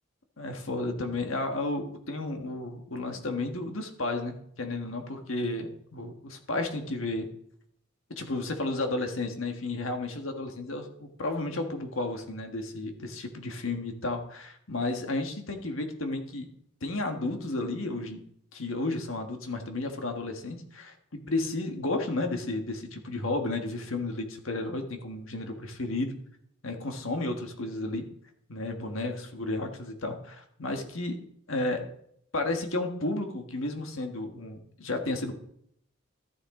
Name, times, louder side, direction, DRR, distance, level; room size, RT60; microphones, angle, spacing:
voice 1, 0.4-7.3 8.2-16.5 16.8-18.2 18.5-26.2 26.6-28.0 28.5-31.2 31.5-31.8 32.3-35.3, left 2 dB, 90° left, 5 dB, 1.6 m, -32 dB
13.0 x 9.0 x 3.8 m, 0.71 s
head